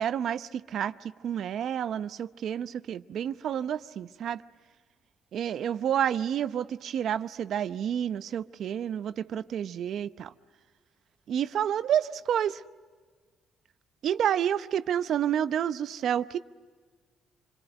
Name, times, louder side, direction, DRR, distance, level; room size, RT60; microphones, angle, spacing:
voice 1, 0.0-4.4 5.3-10.3 11.3-12.6 14.0-16.4, right 9 dB, 70° right, 0.8 m, -29 dB
27.5 x 23.0 x 9.1 m
cardioid pair, 90°, 0 cm